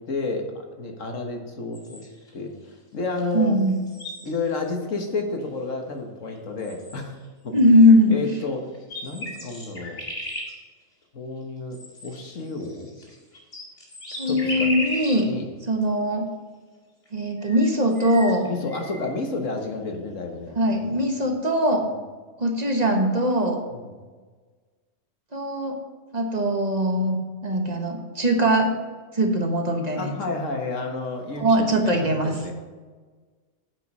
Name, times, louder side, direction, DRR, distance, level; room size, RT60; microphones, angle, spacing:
voice 1, 0.1-2.0 2.3-3.6 4.2-7.2 7.4-7.6 8.1-8.7 9.0-10.0 11.1-12.9 14.3-14.7 15.2-15.5 18.5-21.3 21.9-22.0 23.7-23.9 30.0-32.5, left 3 dB, 85° left, 3 dB, 1.8 m, -31 dB
sound 1, 1.7-2.3 3.2-3.3 3.6-4.7 5.4-5.5 6.3-6.4 6.6-7.3 8.4-8.5 8.7-10.5 11.7-15.3 15.8-15.9 17.1-17.2 17.4-19.1, equal, 55° left, 2.5 m, -36 dB
voice 2, 3.3-3.8 7.5-8.2 14.2-15.3 15.7-16.3 17.1-18.5 20.6-21.9 22.4-23.6 25.3-25.8 26.1-28.7 29.1-30.2 31.4-32.3, equal, 35° right, 2 dB, 1.4 m, -21 dB
9.3 x 7.9 x 5.5 m, 1.4 s
omnidirectional pair, 1.3 m